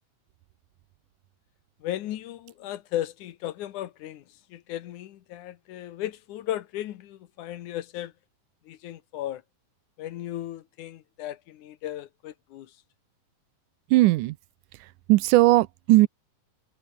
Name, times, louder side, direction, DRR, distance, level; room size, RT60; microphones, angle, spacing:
voice 1, 1.8-4.2 4.5-8.1 8.7-9.4 10.0-12.7, left 13 dB, 75° left, 2.5 m, -35 dB
voice 2, 13.9-14.3 15.1-16.1, right 18 dB, 80° right, 2.1 m, -18 dB
omnidirectional pair, 3.7 m